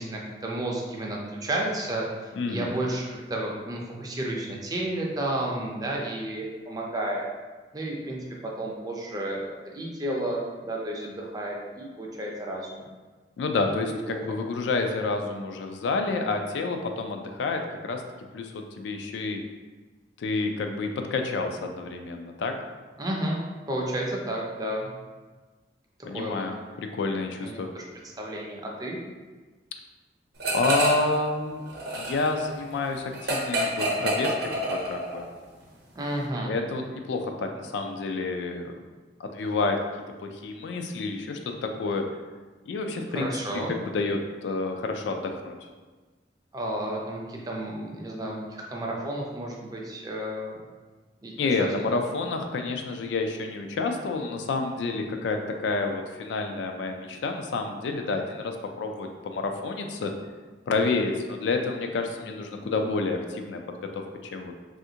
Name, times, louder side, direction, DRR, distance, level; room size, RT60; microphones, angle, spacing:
voice 1, 0.0-7.2 7.7-9.5 9.7-12.8 13.8-14.2 23.0-23.4 23.7-24.9 26.1-26.4 27.4-27.8 28.2-29.0 36.0-36.5 43.1-43.7 46.5-50.6 51.2-51.9, right 1 dB, 20° right, -2 dB, 0.4 m, -32 dB
voice 2, 2.4-2.7 13.4-18.0 18.3-19.4 20.2-22.5 26.1-27.7 30.5-31.6 31.9-35.3 36.5-38.8 39.2-39.8 40.2-42.1 42.7-45.6 51.4-60.1 60.7-63.6 63.9-64.5, left 3 dB, 80° left, 5 dB, 0.3 m, -29 dB
sound 1, 30.4-31.1 31.4-35.3, right 1 dB, 60° right, 0.7 m, -28 dB
3.3 x 2.4 x 2.8 m, 1.3 s
head